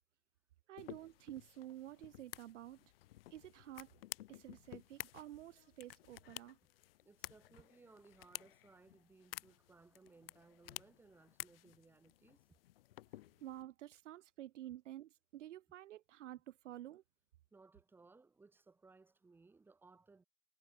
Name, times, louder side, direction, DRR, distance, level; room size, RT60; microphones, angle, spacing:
voice 1, 0.7-2.8 3.3-3.9 4.3-6.6 13.4-17.0, right 13 dB, 65° right, 0.9 m, -51 dB
sound 1, 0.8-13.6, left 15 dB, 45° left, 2.0 m, -53 dB
voice 2, 7.0-12.4 17.5-20.3, right 3 dB, 5° right, 2.8 m, -64 dB
supercardioid pair, 170°, 39 cm